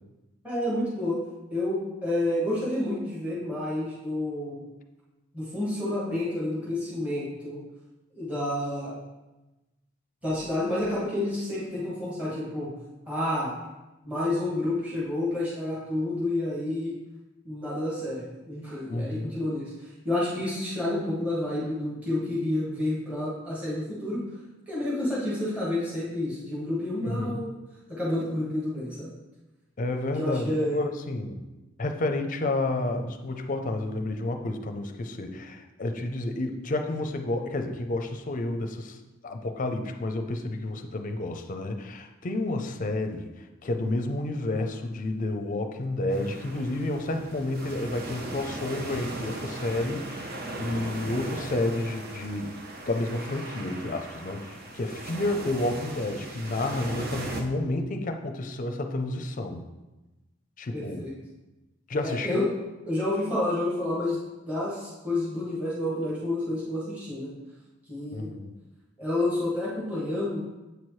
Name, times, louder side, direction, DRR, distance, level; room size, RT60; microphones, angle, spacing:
voice 1, 0.4-1.2 1.5-4.6 5.3-7.6 8.1-8.9 10.2-12.7 13.1-13.5 14.0-16.9 17.4-19.7 20.0-24.2 24.7-27.6 28.0-29.1 30.2-30.8 60.7-61.1 62.0-62.5 62.9-64.2 64.5-67.3 67.9-68.3 69.0-70.4, left 1 dB, 5° right, -8 dB, 1.4 m, -29 dB
voice 2, 18.9-19.3 27.0-27.4 29.8-31.4 31.8-39.0 39.2-43.3 43.6-52.6 52.9-59.7 60.6-61.1 61.9-62.5 68.1-68.5, left 2 dB, 45° left, 6 dB, 0.5 m, -30 dB
sound 1, 46.1-57.4, right 2 dB, 50° right, 0.7 m, -38 dB
8.0 x 4.5 x 3.1 m, 1.1 s
head